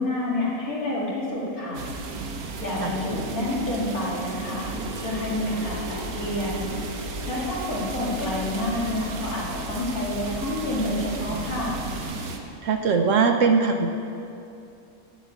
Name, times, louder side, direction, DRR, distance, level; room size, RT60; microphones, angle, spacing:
voice 1, 0.0-1.8 2.6-4.7 5.0-6.7 7.3-11.8, left 1 dB, 80° left, -6 dB, 2.7 m, -28 dB
sound 1, 1.7-12.4, right 4 dB, 90° right, 1.4 m, -35 dB
sound 2, 4.6-12.1, left 1 dB, 15° left, 1.4 m, -38 dB
voice 2, 12.6-13.9, right 5 dB, 65° right, 5 dB, 1.0 m, -20 dB
7.4 x 7.3 x 8.3 m, 2.6 s
omnidirectional pair, 1.5 m